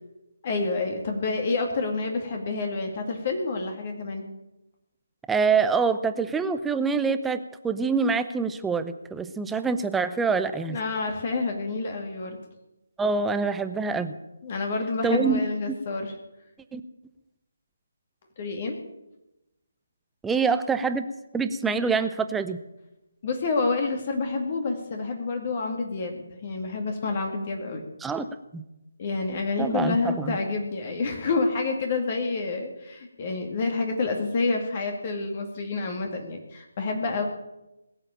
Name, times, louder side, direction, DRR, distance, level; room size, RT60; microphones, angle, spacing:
voice 1, 0.4-4.2 10.7-12.4 14.4-16.1 18.4-18.7 23.2-27.8 29.0-37.3, left 3 dB, 35° left, 4 dB, 2.1 m, -28 dB
voice 2, 5.3-10.8 13.0-14.2 15.0-15.4 15.7-15.8 16.7-16.8 20.2-21.1 21.3-22.6 28.0-28.3 28.5-28.6 29.6-30.4, right 5 dB, 5° right, 10 dB, 0.6 m, -25 dB
20.5 x 7.7 x 9.0 m, 0.97 s
figure-of-eight pair, 150°, 0 cm